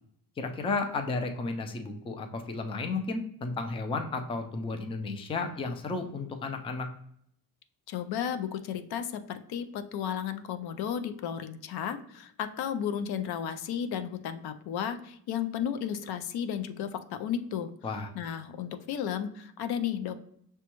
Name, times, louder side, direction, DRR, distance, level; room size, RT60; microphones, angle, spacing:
voice 1, 0.4-6.9 17.8-18.1, left 3 dB, 15° left, 5 dB, 0.3 m, -33 dB
voice 2, 7.9-17.7 18.1-20.2, left 8 dB, 80° left, 9 dB, 0.5 m, -33 dB
6.1 x 2.2 x 2.9 m, 0.70 s
cardioid pair, 145°, 37 cm